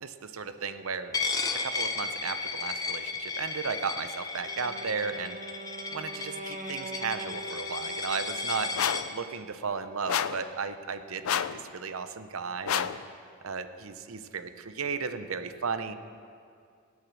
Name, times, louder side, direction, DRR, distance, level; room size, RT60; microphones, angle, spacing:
voice 1, 0.0-1.2 1.6-5.4 5.9-8.7 9.1-12.9 13.4-15.9, right 5 dB, 75° right, 10 dB, 0.8 m, -35 dB
Coin (dropping), 1.1-9.0, left 4 dB, 15° left, 0.8 m, -34 dB
Wind instrument woodwind instrument, 4.4-9.0, right 2 dB, 40° right, 1.0 m, -43 dB
sound 1, 8.8-9.1 10.1-10.5 11.2-11.6 12.7-13.0, left 9 dB, 80° left, 0.4 m, -29 dB
18.5 x 8.4 x 6.2 m, 2.3 s
head